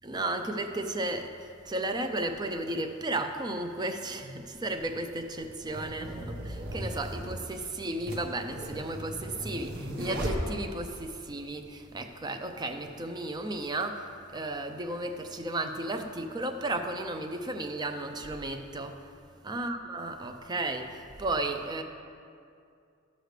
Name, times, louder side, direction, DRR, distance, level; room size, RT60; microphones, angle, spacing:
voice 1, 0.0-19.1 19.4-21.8, right 2 dB, 20° right, 6 dB, 0.5 m, -34 dB
sound 1, 3.7-3.8 4.7-11.1, equal, 50° right, 1.3 m, -37 dB
12.0 x 6.5 x 3.3 m, 2.4 s
head